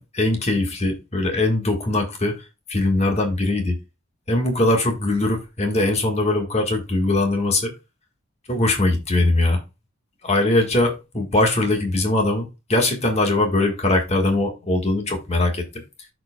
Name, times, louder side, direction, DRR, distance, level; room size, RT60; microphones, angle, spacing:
voice 1, 0.0-3.8 4.3-7.7 8.5-9.6 10.2-15.8, left 2 dB, 30° left, 1.5 m, -21 dB
13.0 x 4.7 x 2.2 m
head